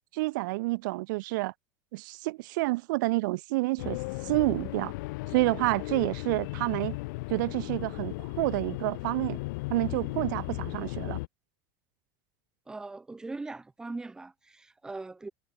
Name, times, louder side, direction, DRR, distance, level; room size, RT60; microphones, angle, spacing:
voice 1, 0.1-1.5 1.9-4.9 5.3-7.0 7.3-9.4 9.7-11.2, right 22 dB, 70° right, 0.6 m, -29 dB
sound 1, 3.8-11.3, left 23 dB, 65° left, 0.7 m, -36 dB
voice 2, 12.7-15.3, right 3 dB, 5° right, 1.0 m, -40 dB
supercardioid pair, 175°, 11 cm